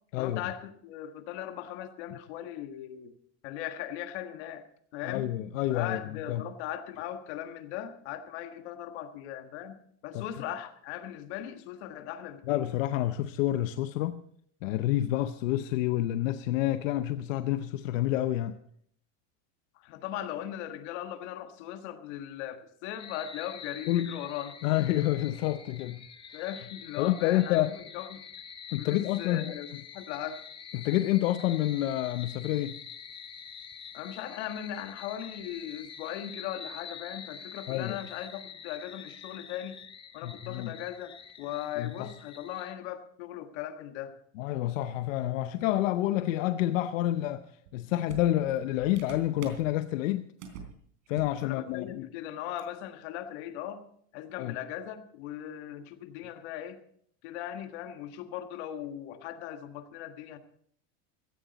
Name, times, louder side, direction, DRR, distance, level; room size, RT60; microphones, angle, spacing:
voice 1, 0.2-3.1 3.4-4.6 4.9-5.3 5.7-9.8 10.0-12.7 19.7-24.5 26.3-28.2 28.8-29.7 29.9-30.4 33.9-39.8 40.1-44.1 51.4-53.8 54.1-56.8 57.2-60.4, left 11 dB, 60° left, 1.5 m, -39 dB
voice 2, 5.0-6.0 6.3-6.4 10.1-10.2 12.5-14.2 14.6-18.6 23.9-24.2 24.6-26.0 27.0-27.8 28.7-29.6 30.7-32.8 37.7-38.0 40.2-40.7 41.8-42.1 44.4-50.3 51.1-52.1 54.4-54.5, left 14 dB, 85° left, 0.8 m, -28 dB
sound 1, 23.0-42.7, left 7 dB, 15° left, 0.6 m, -46 dB
sound 2, 47.7-47.8 48.1-49.7 50.4-50.7 51.1-51.4 51.7-51.8 52.6-52.7, right 6 dB, 80° right, 3.6 m, -44 dB
16.5 x 13.0 x 4.1 m
supercardioid pair, 170°, 38 cm